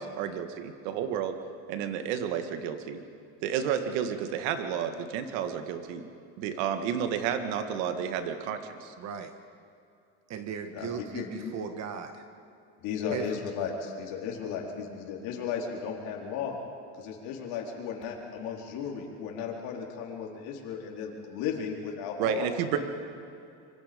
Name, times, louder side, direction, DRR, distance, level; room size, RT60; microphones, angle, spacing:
voice 1, 0.0-1.4 1.7-3.0 3.4-6.0 6.4-8.9 22.2-22.8, right 8 dB, 90° right, 7 dB, 2.0 m, -31 dB
voice 2, 9.0-9.3 10.3-12.2 13.1-13.2, right 7 dB, 50° right, 7 dB, 1.6 m, -37 dB
voice 3, 10.7-11.5 12.8-16.6 17.0-22.5, left 6 dB, 75° left, 0 dB, 4.1 m, -35 dB
26.5 x 24.5 x 5.3 m, 2.6 s
cardioid pair, 135°, 36 cm